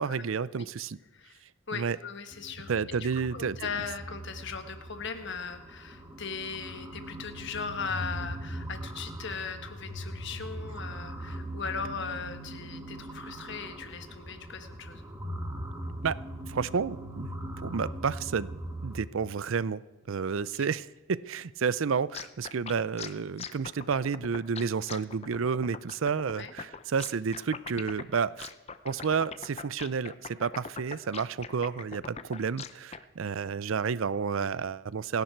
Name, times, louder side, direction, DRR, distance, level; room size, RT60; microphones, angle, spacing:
voice 1, 0.0-1.0 1.7-2.0 2.7-3.7 16.0-16.2 16.5-17.3 17.6-18.5 18.8-19.8 20.1-28.5 28.8-35.2, right 6 dB, 65° right, 18 dB, 0.5 m, -30 dB
voice 2, 1.7-3.0 3.3-15.0 26.3-26.5, left 5 dB, 55° left, 8 dB, 1.4 m, -38 dB
sound 1, 2.3-19.0, right 1 dB, 15° right, 1.7 m, -40 dB
sound 2, 22.1-33.0, left 6 dB, 30° left, 0.6 m, -41 dB
29.0 x 10.5 x 4.6 m, 1.1 s
head